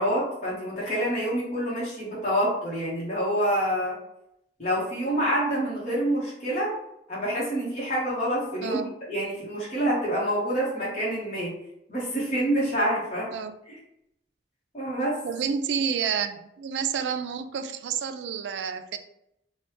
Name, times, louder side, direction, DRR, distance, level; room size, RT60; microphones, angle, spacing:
voice 1, 0.0-4.0 4.6-6.7 7.1-11.6 11.9-13.3 14.7-15.2, equal, 40° left, -7 dB, 1.0 m, -27 dB
voice 2, 8.6-8.9 13.3-13.6 15.2-19.0, right 7 dB, 80° right, 10 dB, 0.3 m, -29 dB
3.0 x 2.2 x 3.1 m, 0.80 s
head